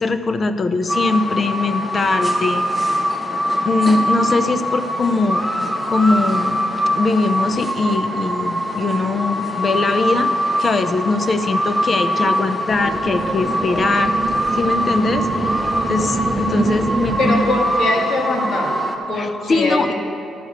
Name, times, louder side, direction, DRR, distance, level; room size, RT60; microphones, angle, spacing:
voice 1, 0.0-2.6 3.6-5.5 5.9-6.6 6.9-10.3 10.6-14.1 14.5-15.3 15.9-17.4 19.1-19.9, left 3 dB, 40° left, 10 dB, 0.6 m, -21 dB
sound 1, 0.9-19.0, equal, 5° left, 1.0 m, -22 dB
sound 2, 12.7-17.7, right 4 dB, 25° right, 0.6 m, -25 dB
voice 2, 17.2-18.7 19.1-19.9, left 1 dB, 70° left, -2 dB, 2.2 m, -22 dB
12.0 x 4.8 x 7.9 m, 2.6 s
cardioid pair, 90°, 0 cm